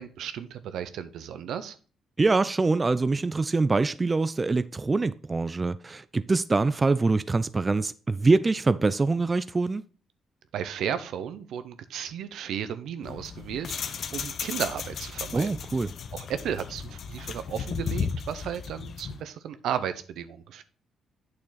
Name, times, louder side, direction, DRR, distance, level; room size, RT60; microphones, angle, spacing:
voice 1, 0.0-1.8 10.5-15.6 16.1-20.6, right 9 dB, 75° right, 0.8 m, -34 dB
voice 2, 2.2-9.8 15.3-15.9, right 3 dB, 25° right, 0.4 m, -24 dB
sound 1, 13.0-19.2, left 6 dB, 55° left, 0.9 m, -35 dB
8.7 x 6.6 x 4.0 m
cardioid pair, 90°, 0 cm